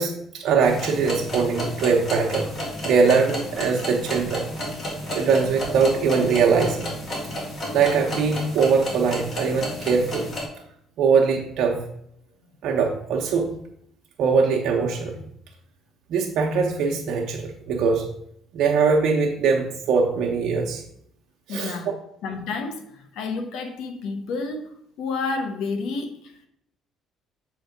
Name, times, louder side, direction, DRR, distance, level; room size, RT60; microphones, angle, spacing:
voice 1, 0.0-2.5 2.8-4.4 5.1-6.9 7.7-10.3 11.0-11.8 12.6-13.5 14.2-15.2 16.1-18.0 18.5-20.8 21.5-21.8, right 5 dB, 70° right, 0 dB, 0.9 m, -21 dB
sound 1, 0.6-10.4, left 1 dB, 35° left, 2.7 m, -32 dB
voice 2, 21.5-21.9 22.2-24.7 25.0-26.5, left 4 dB, 75° left, 6 dB, 1.1 m, -30 dB
7.7 x 3.4 x 5.1 m, 0.70 s
cardioid pair, 100°, 0 cm